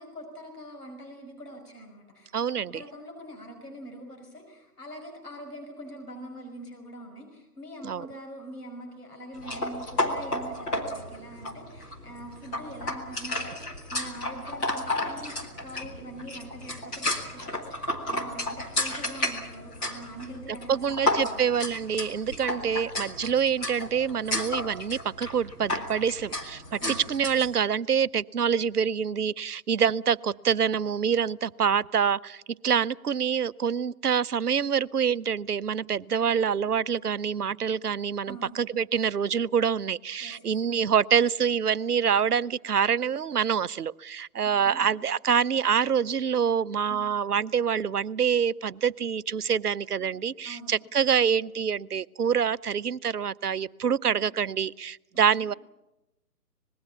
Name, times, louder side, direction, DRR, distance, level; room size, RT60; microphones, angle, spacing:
voice 1, 0.0-21.5 22.5-22.7 26.8-27.1 38.3-38.7 40.2-40.6 44.6-44.9 46.9-47.0 50.4-50.8 54.1-54.3 55.4-55.5, equal, 70° left, 3 dB, 6.1 m, -44 dB
voice 2, 2.3-2.8 7.8-8.1 20.7-55.5, right 7 dB, 70° right, 17 dB, 0.7 m, -26 dB
sound 1, 9.4-27.5, left 1 dB, 5° left, 0.8 m, -32 dB
25.0 x 20.5 x 7.2 m, 0.96 s
figure-of-eight pair, 140°, 48 cm